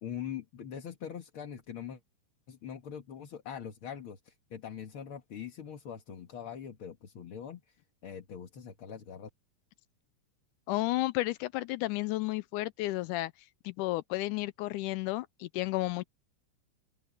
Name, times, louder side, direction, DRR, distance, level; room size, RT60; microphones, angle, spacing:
voice 1, 0.0-2.0 2.5-7.6 8.0-9.3, left 8 dB, 50° left, 2.0 m, -42 dB
voice 2, 10.7-13.3 13.6-16.0, left 18 dB, 80° left, 1.9 m, -32 dB
open air
omnidirectional pair, 3.8 m